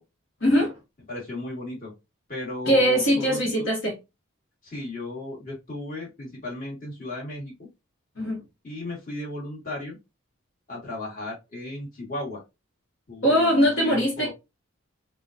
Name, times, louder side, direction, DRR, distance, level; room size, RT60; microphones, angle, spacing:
voice 1, 0.4-0.7 2.7-3.9 8.2-8.4 13.2-14.3, equal, 65° left, 1.1 m, -21 dB
voice 2, 1.1-1.9 2.3-3.7 4.6-7.7 8.6-10.0 10.7-12.4 13.1-14.3, left 2 dB, 40° left, 1.5 m, -35 dB
3.8 x 2.2 x 2.4 m
head